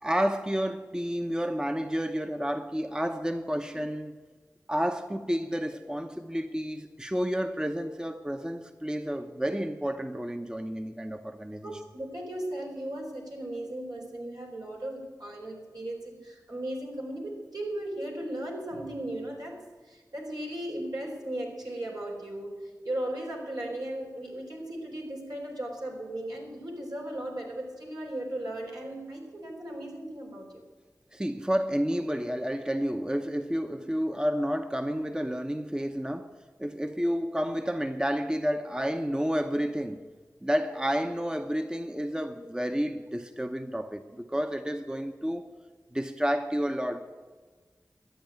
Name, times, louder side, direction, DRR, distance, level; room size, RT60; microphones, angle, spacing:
voice 1, 0.0-4.1 4.7-11.7 31.1-36.3 36.6-40.0 40.4-45.4 45.9-47.0, equal, 10° right, 0.8 m, -30 dB
voice 2, 11.6-30.6, right 1 dB, 75° right, 4.1 m, -37 dB
12.5 x 8.6 x 9.2 m
cardioid pair, 45°, 7 cm